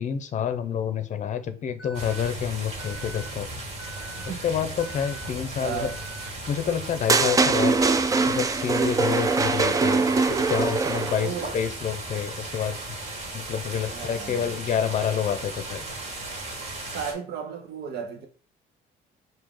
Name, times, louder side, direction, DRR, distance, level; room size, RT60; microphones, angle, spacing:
voice 1, 0.0-3.5 4.4-5.9 6.5-7.8 8.3-12.8 13.3-15.8, left 8 dB, 45° left, 0.6 m, -28 dB
Alarm, 1.8-2.3 2.8-3.3 3.8-4.3 4.8-5.3 5.8-6.3, right 3 dB, ahead, 1.0 m, -43 dB
sound 1, 1.9-17.1, right 2 dB, 40° right, 1.5 m, -36 dB
voice 2, 4.2-4.8 5.5-6.0 9.7-10.4 11.0-11.5 13.9-14.5 16.9-18.3, right 7 dB, 75° right, 1.1 m, -35 dB
sound 2, 7.1-11.4, right 4 dB, 20° right, 0.4 m, -22 dB
4.6 x 2.8 x 3.7 m
cardioid pair, 110°, 17 cm